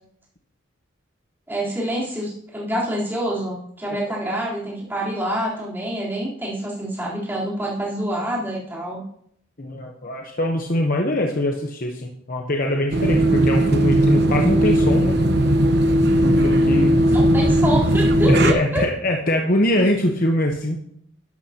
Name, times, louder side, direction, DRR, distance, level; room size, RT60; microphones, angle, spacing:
voice 1, 1.5-9.0 17.1-18.8, right 1 dB, 10° right, -6 dB, 3.7 m, -26 dB
voice 2, 9.6-15.2 16.2-17.0 18.3-20.8, left 1 dB, 45° left, 1 dB, 1.0 m, -23 dB
sound 1, 12.9-18.5, right 1 dB, 55° right, 1.0 m, -17 dB
12.0 x 11.5 x 2.9 m, 0.69 s
head